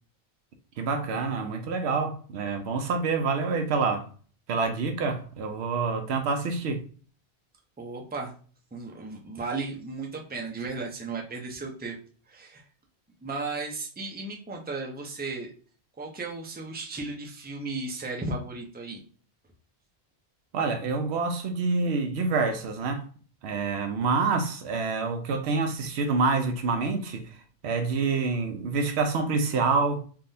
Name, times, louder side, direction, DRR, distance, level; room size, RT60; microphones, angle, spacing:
voice 1, 0.8-4.1 4.5-6.8 20.5-23.0 23.4-27.4 27.6-30.0, right 4 dB, 90° right, 0.8 m, -27 dB
voice 2, 7.8-8.3 8.7-12.0 12.3-12.6 13.2-15.5 16.0-19.0, right 3 dB, 15° right, 0.5 m, -35 dB
3.5 x 2.3 x 2.6 m
omnidirectional pair, 1.1 m